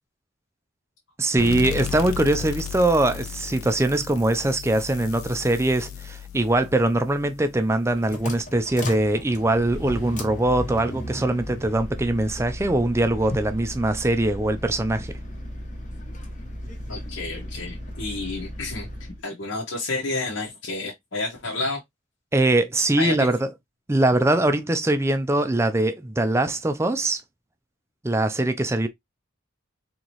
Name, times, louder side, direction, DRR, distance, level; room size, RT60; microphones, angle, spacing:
voice 1, 1.2-15.2 22.3-23.5 23.9-27.2 28.0-28.9, right 1 dB, 15° right, 0.4 m, -22 dB
sound 1, 1.4-8.6, left 8 dB, 85° left, 0.6 m, -35 dB
sound 2, 7.7-19.2, left 1 dB, 35° left, 1.0 m, -35 dB
voice 2, 16.9-18.9 19.2-21.8 23.0-23.3, left 3 dB, 65° left, 1.1 m, -30 dB
3.9 x 2.9 x 3.0 m
head